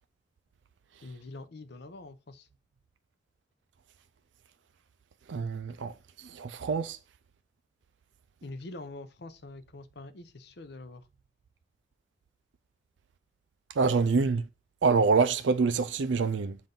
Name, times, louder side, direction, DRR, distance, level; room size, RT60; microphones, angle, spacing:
voice 1, 1.0-2.5 8.4-11.1, left 2 dB, 65° left, 0.7 m, -45 dB
voice 2, 5.3-5.9 6.2-7.0 13.8-14.5 14.8-16.6, right 4 dB, 85° right, 0.4 m, -26 dB
7.4 x 2.6 x 5.2 m
head